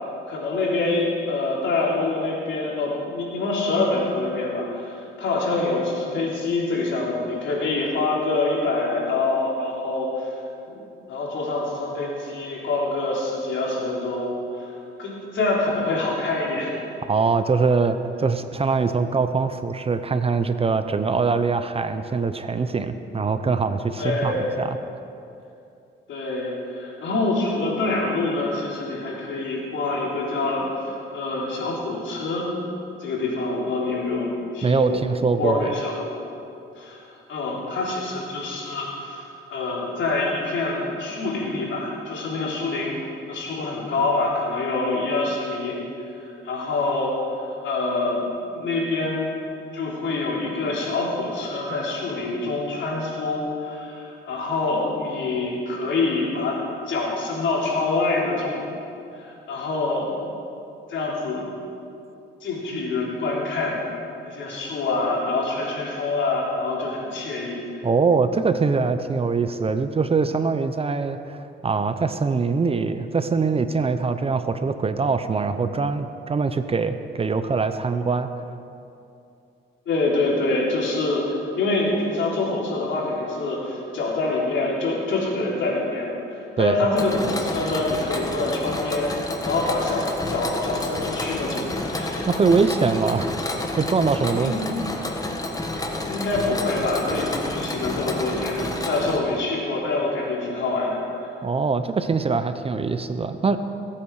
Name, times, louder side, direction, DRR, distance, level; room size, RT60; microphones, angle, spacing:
voice 1, 0.3-10.3 10.7-16.7 24.0-24.5 26.1-32.5 33.0-35.0 35.4-36.1 36.8-43.0 43.3-45.8 46.2-48.2 48.5-49.3 49.7-56.6 56.9-58.6 59.1-60.2 60.9-61.5 62.4-63.8 64.2-67.8 79.9-89.1 89.4-92.3 94.3-94.6 96.0-101.3, left 2 dB, 70° left, -3 dB, 3.7 m, -26 dB
voice 2, 17.0-24.7 34.6-35.7 67.8-78.3 86.6-86.8 92.3-93.3 93.8-94.5 101.4-103.6, right 4 dB, 30° right, 10 dB, 0.7 m, -23 dB
Mechanisms, 87.0-99.2, left 2 dB, 20° left, 1.5 m, -30 dB
21.0 x 8.8 x 4.9 m, 2.7 s
cardioid pair, 90°, 20 cm